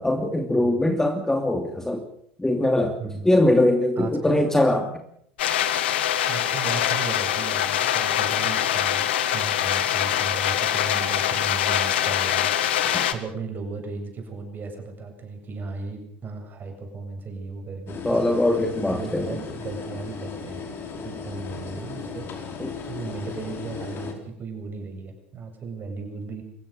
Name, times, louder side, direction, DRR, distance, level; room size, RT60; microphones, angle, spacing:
voice 1, 0.0-2.0 2.4-5.0 12.9-13.1 18.0-19.4 22.6-22.7, left 1 dB, 10° left, 5 dB, 2.8 m, -22 dB
voice 2, 3.0-3.3 4.0-4.4 6.1-18.0 18.9-20.7 21.0-26.4, right 4 dB, 30° right, 4 dB, 8.0 m, -36 dB
sound 1, 5.4-13.1, left 11 dB, 75° left, 1.8 m, -24 dB
sound 2, 17.9-24.1, left 5 dB, 40° left, 4.8 m, -36 dB
27.5 x 16.0 x 6.7 m, 0.66 s
hypercardioid pair, 80°, 6 cm